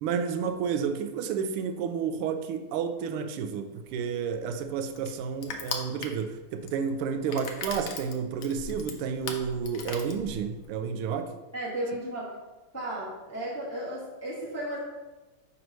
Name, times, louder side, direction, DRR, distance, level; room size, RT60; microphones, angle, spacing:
voice 1, 0.0-11.3, right 6 dB, 85° right, 7 dB, 1.5 m, -31 dB
Crushing, 3.9-10.7, left 5 dB, 90° left, 0.7 m, -39 dB
voice 2, 11.5-12.4 12.7-14.8, right 1 dB, 10° left, -7 dB, 0.9 m, -34 dB
6.2 x 3.1 x 5.2 m, 1.2 s
omnidirectional pair, 2.4 m